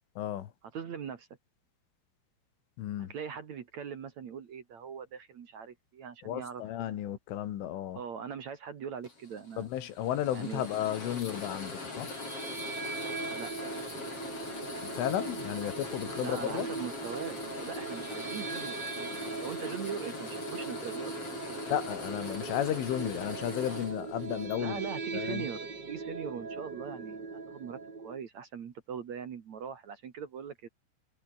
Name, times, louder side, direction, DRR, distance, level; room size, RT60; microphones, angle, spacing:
voice 1, 0.2-0.5 2.8-3.1 6.2-8.0 9.6-12.1 14.6-16.7 21.7-24.8 25.1-25.5, left 11 dB, 75° left, 4.6 m, -33 dB
voice 2, 0.7-1.3 3.0-7.0 7.9-9.7 10.3-10.7 13.3-13.7 16.2-21.2 21.4-21.6 24.6-30.7, right 7 dB, 55° right, 2.2 m, -41 dB
sound 1, 9.0-24.6, left 3 dB, 30° left, 7.4 m, -42 dB
sound 2, 12.1-28.2, right 4 dB, 25° right, 3.0 m, -40 dB
omnidirectional pair, 5.8 m